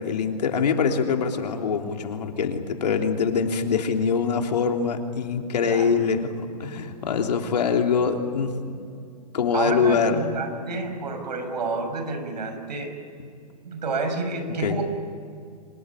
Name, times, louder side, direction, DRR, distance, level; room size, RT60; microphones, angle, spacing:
voice 1, 0.0-6.3 6.6-8.8 9.3-10.2 14.6-14.8, left 6 dB, 70° left, 3 dB, 3.3 m, -24 dB
voice 2, 9.5-12.9 13.6-14.8, right 3 dB, 80° right, 6 dB, 6.2 m, -29 dB
26.0 x 20.0 x 10.0 m, 2.4 s
hypercardioid pair, 175°, 21 cm